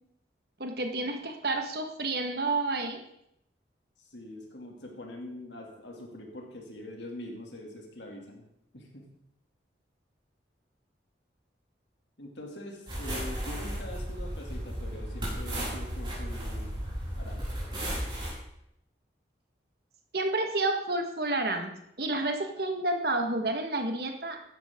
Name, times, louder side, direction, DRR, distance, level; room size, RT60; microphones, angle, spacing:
voice 1, 0.6-3.0 20.1-24.4, right 2 dB, 55° right, 5 dB, 1.6 m, -30 dB
voice 2, 4.1-8.4 8.7-9.0 12.2-16.7 17.1-17.4, left 1 dB, 75° left, 1 dB, 2.7 m, -43 dB
sound 1, 12.9-18.3, equal, 25° right, 5.5 m, -34 dB
14.5 x 10.5 x 3.8 m, 0.77 s
head